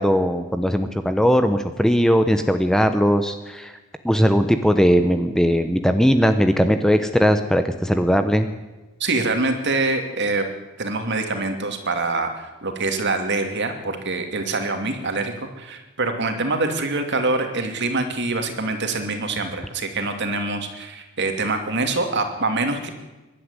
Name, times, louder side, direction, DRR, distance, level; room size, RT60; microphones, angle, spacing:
voice 1, 0.0-3.7 4.0-8.5, equal, 5° left, 8 dB, 0.9 m, -19 dB
voice 2, 9.0-10.4 10.8-22.9, right 3 dB, 55° right, 6 dB, 2.7 m, -25 dB
23.0 x 12.0 x 9.8 m, 1.1 s
head